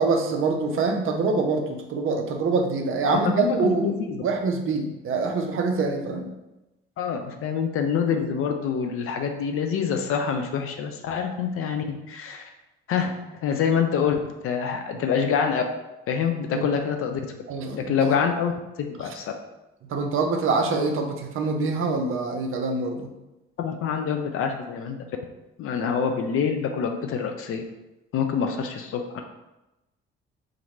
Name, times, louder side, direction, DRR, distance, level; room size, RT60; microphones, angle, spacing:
voice 1, 0.0-3.9 4.2-6.3 14.9-15.0 16.5-16.7 17.5-17.9 19.9-23.1, right 4 dB, 40° right, 4 dB, 0.6 m, -25 dB
voice 2, 3.1-4.2 7.0-12.5 12.9-13.1 13.4-15.6 16.1-17.3 17.7-18.5 18.8-19.3 23.6-25.0 25.6-27.7 28.1-29.2, left 7 dB, 40° left, 5 dB, 0.5 m, -26 dB
2.8 x 2.6 x 4.1 m, 0.98 s
figure-of-eight pair, 45°, 34 cm